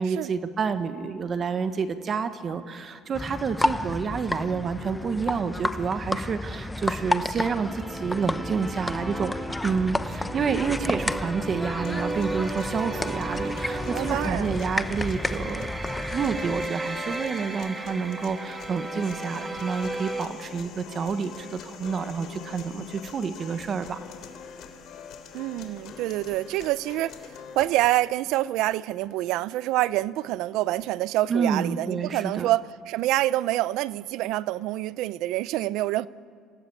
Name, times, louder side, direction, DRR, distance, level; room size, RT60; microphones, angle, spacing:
voice 1, 0.0-9.3 9.6-15.7 16.1-24.0 31.3-32.5, right 5 dB, 40° right, 1.3 m, -29 dB
sound 1, 3.1-16.7, left 2 dB, 10° left, 0.8 m, -31 dB
sound 2, 7.4-20.3, right 2 dB, 15° right, 2.4 m, -35 dB
sound 3, 11.8-27.8, left 6 dB, 60° left, 3.2 m, -43 dB
voice 2, 13.9-14.5 25.3-27.2 27.5-36.1, right 16 dB, 75° right, 0.6 m, -26 dB
27.0 x 17.5 x 8.5 m
cardioid pair, 110°, 0 cm